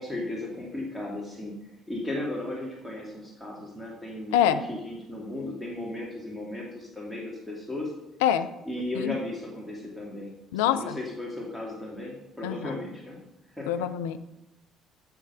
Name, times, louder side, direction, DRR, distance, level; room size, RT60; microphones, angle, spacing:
voice 1, 0.0-7.9 8.7-13.2 13.5-13.8, left 1 dB, ahead, -3 dB, 2.4 m, -36 dB
voice 2, 10.5-11.0 12.4-12.7 13.7-14.2, left 10 dB, 70° left, 10 dB, 0.5 m, -25 dB
9.3 x 6.7 x 5.6 m, 0.95 s
figure-of-eight pair, 50°, 0 cm